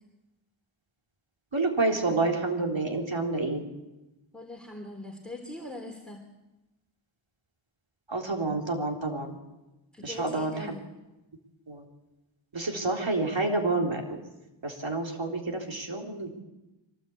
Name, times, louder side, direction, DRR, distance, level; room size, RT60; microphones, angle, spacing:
voice 1, 1.5-3.6 8.1-9.4 10.0-10.7 11.7-11.8 12.5-14.2 14.6-16.4, right 3 dB, 70° right, 1 dB, 3.6 m, -29 dB
voice 2, 4.3-6.2 9.9-10.8, left 1 dB, ahead, 2 dB, 3.2 m, -41 dB
24.0 x 18.5 x 8.5 m, 1.0 s
wide cardioid pair, 65°, 47 cm